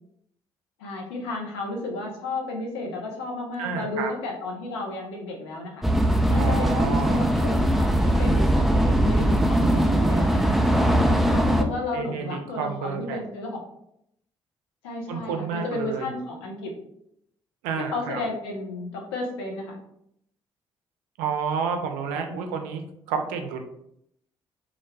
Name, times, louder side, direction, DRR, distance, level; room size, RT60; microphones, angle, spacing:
voice 1, 0.8-5.8 6.3-10.5 11.3-13.6 14.8-16.7 17.8-19.8 22.1-22.4, left 2 dB, 80° left, 0 dB, 0.5 m, -33 dB
voice 2, 3.6-4.1 6.4-7.2 11.9-13.2 15.1-16.1 17.6-18.2 21.2-22.8 23.1-23.6, right 6 dB, 75° right, 5 dB, 0.4 m, -30 dB
sound 1, 5.8-11.6, right 1 dB, ahead, 0.4 m, -20 dB
2.3 x 2.2 x 3.2 m, 0.76 s
hypercardioid pair, 45°, 13 cm